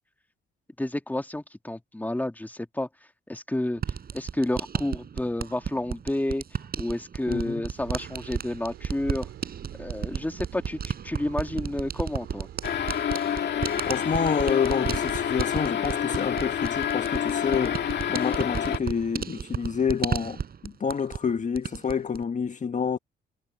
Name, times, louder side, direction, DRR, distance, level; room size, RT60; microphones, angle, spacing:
voice 1, 0.8-2.9 3.3-3.8 4.1-6.4 6.8-9.3 9.8-12.5, left 1 dB, 10° left, 2.3 m, -30 dB
sound 1, 3.8-21.3 21.5-22.2, right 7 dB, 50° right, 7.0 m, -34 dB
voice 2, 7.3-7.6 13.9-17.8 18.1-23.0, left 6 dB, 40° left, 1.5 m, -28 dB
sound 2, 7.8-13.0, right 13 dB, 85° right, 3.8 m, -45 dB
sound 3, 12.6-18.8, left 9 dB, 60° left, 2.2 m, -28 dB
cardioid pair, 90°, 20 cm